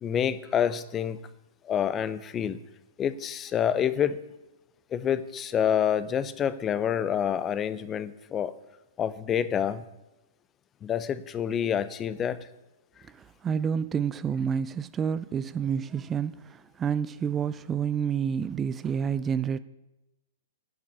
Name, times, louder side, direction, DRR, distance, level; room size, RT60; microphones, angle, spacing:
voice 1, 0.0-1.2 1.6-2.6 3.0-4.2 4.9-8.5 9.0-9.8 10.8-12.5, left 9 dB, 25° left, 0.6 m, -27 dB
voice 2, 13.0-19.6, right 7 dB, 20° right, 0.3 m, -29 dB
11.0 x 5.8 x 8.8 m
hypercardioid pair, 115°, 0 cm